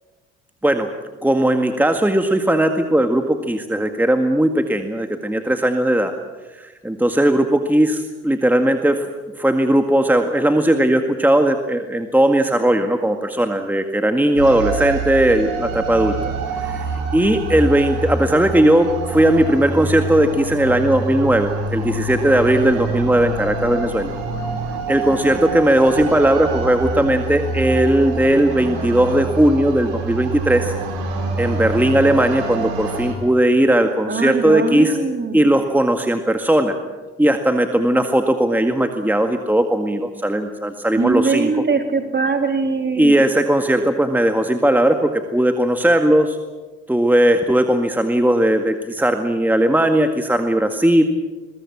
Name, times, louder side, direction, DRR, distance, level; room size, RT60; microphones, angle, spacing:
voice 1, 1.2-6.1 6.5-9.1 9.4-16.3 16.6-16.9 17.1-24.1 24.9-30.7 31.4-35.0 35.3-36.8 37.2-41.5 43.0-46.4 46.9-51.0, right 1 dB, 5° right, 6 dB, 1.9 m, -17 dB
sound 1, 14.4-33.1, right 3 dB, 85° right, 4.9 m, -26 dB
voice 2, 34.1-35.4 41.0-43.2, right 4 dB, 30° right, 5 dB, 3.6 m, -21 dB
22.5 x 22.0 x 7.4 m, 1.2 s
hypercardioid pair, 60°, 32 cm